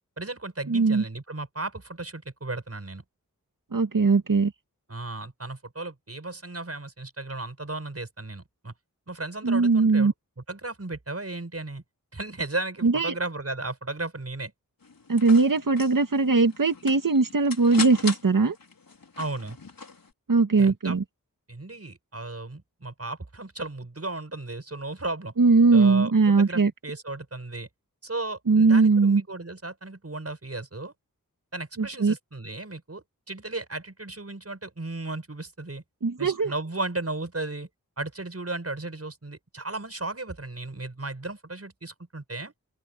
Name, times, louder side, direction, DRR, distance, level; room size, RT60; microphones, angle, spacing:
voice 1, 0.2-3.0 4.9-8.7 9.1-11.8 12.1-14.5 19.2-19.6 20.6-21.0 21.5-25.3 25.7-27.7 28.0-30.9 31.5-35.8 36.2-37.7 38.0-42.5, right 2 dB, 45° right, 7.5 m, -35 dB
voice 2, 0.7-1.0 3.7-4.5 9.4-10.1 12.8-13.1 15.1-18.6 20.3-21.0 25.4-26.7 28.5-29.2 32.0-32.1 36.0-36.5, right 4 dB, 65° right, 2.1 m, -20 dB
sound 1, 14.8-20.1, left 4 dB, 80° left, 4.2 m, -39 dB
open air
wide cardioid pair, 60°, 34 cm